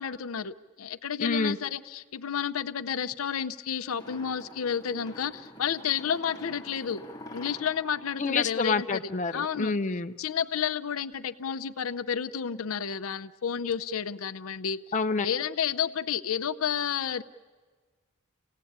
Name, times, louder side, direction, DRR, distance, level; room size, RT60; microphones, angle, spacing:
voice 1, 0.0-7.0 7.3-9.0 9.3-9.7 10.2-14.8 15.2-17.2, left 8 dB, 85° left, 12 dB, 0.6 m, -31 dB
voice 2, 1.2-1.6 8.2-10.1 14.9-15.3, left 4 dB, 35° left, 7 dB, 0.6 m, -28 dB
sound 1, 3.9-9.2, left 1 dB, 20° left, 1.6 m, -47 dB
28.0 x 17.5 x 8.7 m, 1.5 s
head